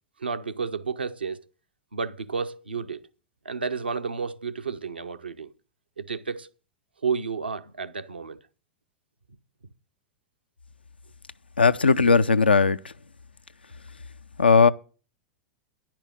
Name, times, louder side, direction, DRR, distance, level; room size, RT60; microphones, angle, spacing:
voice 1, 0.2-1.4 1.9-3.0 3.4-5.5 6.0-6.5 7.0-8.4, right 5 dB, 80° right, 0.7 m, -31 dB
voice 2, 11.6-12.9 14.4-14.7, left 4 dB, 85° left, 0.4 m, -18 dB
10.0 x 6.0 x 7.9 m
figure-of-eight pair, 95°, 5 cm